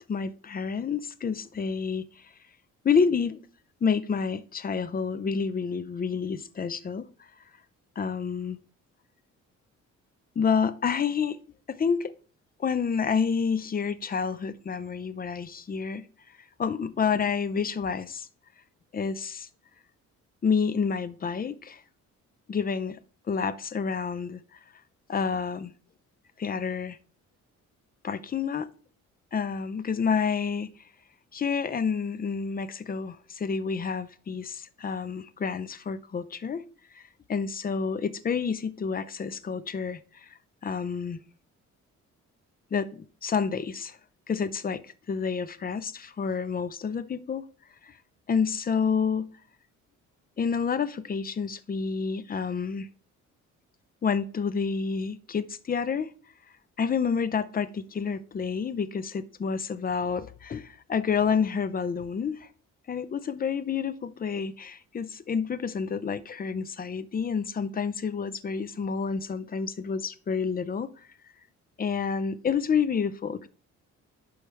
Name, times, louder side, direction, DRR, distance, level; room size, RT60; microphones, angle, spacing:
voice 1, 0.1-2.2 2.8-3.4 3.8-7.0 8.0-8.6 10.4-11.4 11.7-12.1 12.6-16.1 16.6-18.3 18.9-19.5 20.4-21.8 22.5-23.0 23.3-24.4 25.1-25.7 26.4-27.0 28.0-28.7 29.3-30.7 31.3-36.6 36.9-37.0 37.3-40.3 40.6-41.2 42.7-44.0 44.3-47.4 47.8-47.9 48.3-49.3 50.4-52.9 54.0-56.1 56.8-62.5 62.9-70.9 71.8-73.5, left 6 dB, 30° left, 0.6 m, -29 dB
11.0 x 4.8 x 3.4 m
cardioid pair, 90°, 30 cm